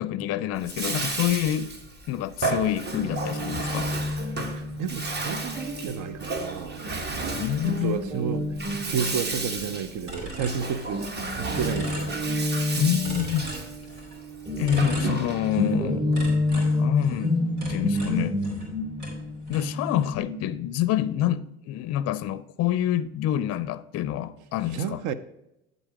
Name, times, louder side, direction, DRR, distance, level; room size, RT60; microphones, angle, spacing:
voice 1, 0.0-1.7 2.1-3.9 7.3-8.0 12.7-13.5 14.6-17.4 17.7-18.4 19.5-25.0, left 12 dB, 45° left, 0.4 m, -27 dB
Bathtub (filling or washing), 0.5-15.7, right 3 dB, 30° right, 1.0 m, -33 dB
Guitar, 2.9-10.6 10.9-21.4, left 1 dB, 15° right, 1.2 m, -30 dB
voice 2, 4.5-7.2 7.7-8.6 8.9-12.1 24.7-25.1, right 7 dB, 60° right, 0.6 m, -31 dB
sound 1, 10.1-11.2 11.5-12.6 13.0-14.2 14.6-15.8 16.1-18.7 19.0-20.2, right 1 dB, 80° right, 2.8 m, -39 dB
9.0 x 3.9 x 4.8 m
supercardioid pair, 85°, 35 cm